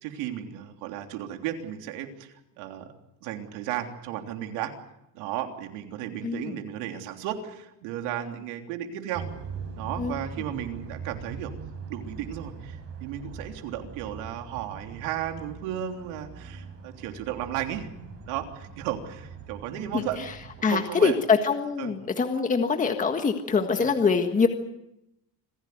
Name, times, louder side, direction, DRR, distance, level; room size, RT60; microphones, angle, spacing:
voice 1, 0.0-2.9 3.2-4.7 5.1-9.3 9.8-11.5 11.9-17.9 18.2-20.3 20.6-21.1 21.8-21.9 23.8-23.9, right 11 dB, 90° right, 5 dB, 3.4 m, -34 dB
voice 2, 6.2-6.6 10.0-10.1 19.9-20.3 20.6-24.5, left 5 dB, 20° left, 6 dB, 1.6 m, -24 dB
sound 1, 9.1-20.6, right 5 dB, 35° right, 5.2 m, -41 dB
26.5 x 16.0 x 9.4 m, 0.86 s
cardioid pair, 150°, 40 cm